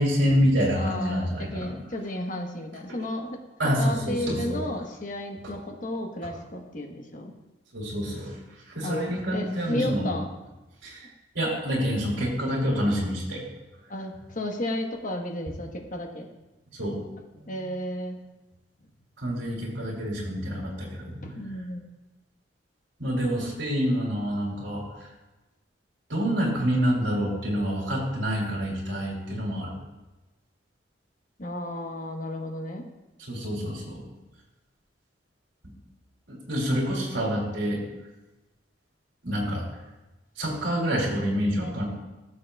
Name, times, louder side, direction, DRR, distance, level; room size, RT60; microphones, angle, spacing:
voice 1, 0.0-1.7 3.6-4.6 7.7-8.3 8.7-10.1 10.8-11.1 11.3-13.4 16.8-17.0 19.2-21.2 23.0-25.1 26.1-29.7 33.3-34.0 36.3-37.8 39.2-39.6 40.4-41.8, equal, 80° right, -3 dB, 2.8 m, -27 dB
voice 2, 0.7-3.4 3.8-7.3 8.8-10.3 13.9-16.3 17.3-18.2 21.2-21.9 31.4-32.9, left 1 dB, 45° left, 3 dB, 1.1 m, -33 dB
16.5 x 7.2 x 2.3 m, 1.1 s
head